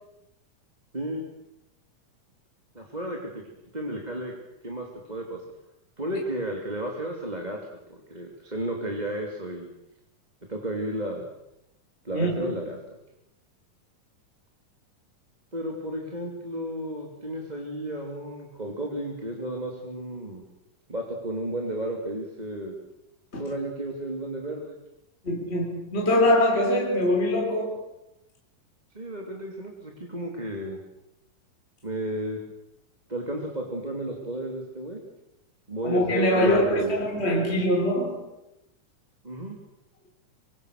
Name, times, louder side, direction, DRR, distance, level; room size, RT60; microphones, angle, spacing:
voice 1, 2.7-3.4 3.7-4.3 4.6-5.5 6.0-7.6 7.9-9.7 10.5-11.3 12.0-12.8 15.5-20.4 20.9-22.8 23.4-24.8 28.9-30.8 31.8-32.4 33.1-35.0 35.7-37.0 39.2-39.6, right 1 dB, 15° right, 2.8 m, -33 dB
voice 2, 25.2-27.8 35.8-38.2, left 1 dB, 20° left, 4.5 m, -23 dB
26.0 x 25.0 x 6.7 m
omnidirectional pair, 3.9 m